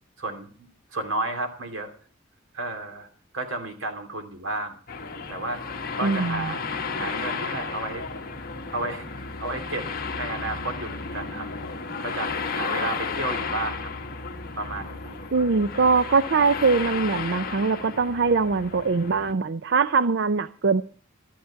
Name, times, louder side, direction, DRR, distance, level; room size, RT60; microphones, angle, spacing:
voice 1, 0.2-1.9 2.5-3.1 3.3-4.8 5.3-5.6 5.9-6.6 7.0-8.1 8.7-11.5 12.0-13.9 14.6-15.2, right 2 dB, 75° right, 5 dB, 2.8 m, -32 dB
sound 1, 4.9-19.3, left 5 dB, 45° left, 1.5 m, -33 dB
voice 2, 6.0-6.5 15.3-20.8, right 4 dB, 55° right, 14 dB, 0.5 m, -22 dB
12.5 x 12.0 x 5.7 m, 0.42 s
head